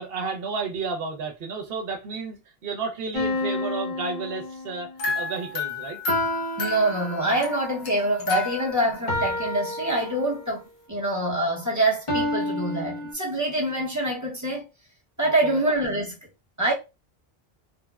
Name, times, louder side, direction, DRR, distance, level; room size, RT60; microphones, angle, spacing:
voice 1, 0.0-6.0 15.2-15.6, right 4 dB, 65° right, 0.9 m, -32 dB
sound 1, 3.1-4.9 6.1-7.5 9.1-10.6 12.1-13.1, left 1 dB, 35° left, 0.6 m, -30 dB
sound 2, 5.0-9.1, left 4 dB, 75° left, 1.0 m, -32 dB
voice 2, 6.6-10.6 10.9-14.6 15.2-16.2 16.6-16.7, right 1 dB, 20° right, 0.7 m, -25 dB
3.3 x 2.1 x 2.3 m
omnidirectional pair, 1.0 m